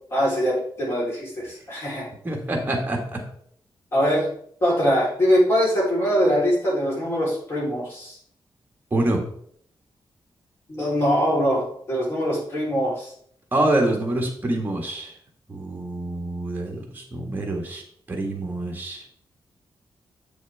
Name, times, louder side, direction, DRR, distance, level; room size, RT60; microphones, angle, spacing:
voice 1, 0.1-2.1 3.9-4.3 4.6-8.2 10.7-13.1, equal, 30° left, -5 dB, 3.5 m, -22 dB
voice 2, 2.2-3.2 8.9-9.2 13.5-15.1 15.5-17.8 18.1-19.0, right 1 dB, 25° right, 1 dB, 1.6 m, -26 dB
8.0 x 6.3 x 3.4 m, 0.64 s
wide cardioid pair, 160°, 8 cm